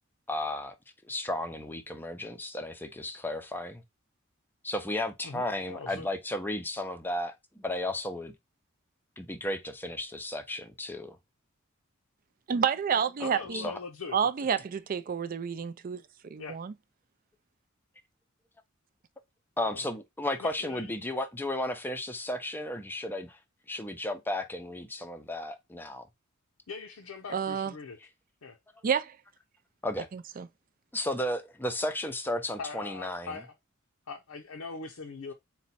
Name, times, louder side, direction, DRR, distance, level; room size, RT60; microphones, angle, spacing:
voice 1, 0.3-0.7 1.1-3.8 4.6-8.3 9.2-11.2 13.5-13.8 19.6-23.4 23.7-26.1 29.8-30.1 30.9-33.4, left 1 dB, 10° left, 0.5 m, -34 dB
voice 2, 5.2-6.1 13.2-14.2 16.4-16.6 19.6-19.9 20.4-20.9 26.7-28.0 28.4-28.6 32.6-33.6 34.1-35.3, left 4 dB, 85° left, 0.6 m, -41 dB
voice 3, 12.5-13.6 14.1-16.0 16.3-16.7 27.3-27.7 28.8-29.1 30.1-30.5, right 7 dB, 40° right, 0.4 m, -29 dB
4.2 x 2.2 x 4.1 m
head